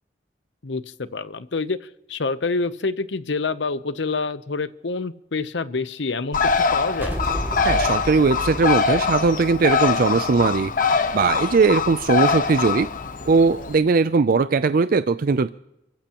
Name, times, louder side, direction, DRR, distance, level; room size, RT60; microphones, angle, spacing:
voice 1, 0.6-1.8 2.1-7.2, left 4 dB, 85° left, 14 dB, 0.8 m, -27 dB
Bird, 6.3-13.7, left 5 dB, 50° left, 1.1 m, -23 dB
sound 1, 7.0-10.4, equal, 10° right, 2.5 m, -32 dB
voice 2, 7.6-12.9 13.3-15.5, right 4 dB, 55° right, 13 dB, 0.4 m, -19 dB
29.0 x 15.0 x 3.0 m, 0.87 s
head